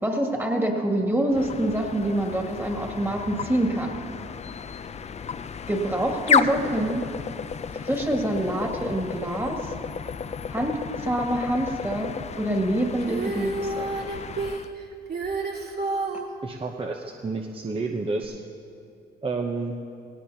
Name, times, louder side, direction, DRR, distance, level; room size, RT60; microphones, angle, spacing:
voice 1, 0.0-4.0 5.7-7.1 7.7-9.7 10.5-10.7 11.0-13.9, right 1 dB, 10° right, 1 dB, 2.2 m, -26 dB
sound 1, 1.3-14.7, left 6 dB, 35° left, 0.5 m, -32 dB
Female singing, 13.0-16.3 18.2-18.3, right 3 dB, 55° right, 2.1 m, -30 dB
voice 2, 16.4-18.4 19.2-19.8, right 3 dB, 25° right, 2 dB, 0.9 m, -30 dB
18.5 x 17.0 x 2.9 m, 2.6 s
cardioid pair, 90°, 20 cm